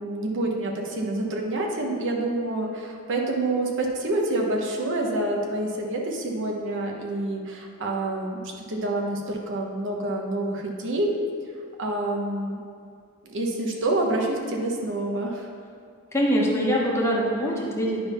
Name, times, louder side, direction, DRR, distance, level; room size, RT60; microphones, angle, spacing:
voice 1, 0.0-11.1 11.8-12.6 13.2-15.5, right 2 dB, 60° right, 0 dB, 1.1 m, -27 dB
voice 2, 16.1-18.1, equal, 10° left, -4 dB, 1.2 m, -23 dB
9.6 x 3.6 x 5.7 m, 2.3 s
head